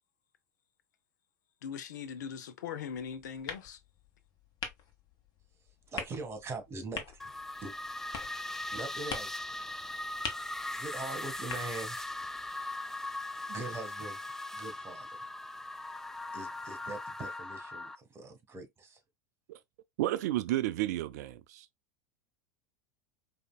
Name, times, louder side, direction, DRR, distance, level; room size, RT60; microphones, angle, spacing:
voice 1, 1.6-3.8, left 7 dB, 75° left, 0.7 m, -40 dB
sound 1, 2.9-12.5, left 5 dB, 45° left, 1.3 m, -45 dB
voice 2, 5.9-7.2 7.6-7.7 8.7-9.4 10.8-12.0 13.5-14.2 14.5-15.2 16.3-19.0, right 3 dB, 25° right, 1.6 m, -42 dB
sound 2, 7.2-18.0, left 2 dB, 5° left, 0.4 m, -39 dB
voice 3, 20.0-21.7, right 15 dB, 65° right, 0.4 m, -32 dB
5.0 x 2.7 x 2.3 m
hypercardioid pair, 90°, 10 cm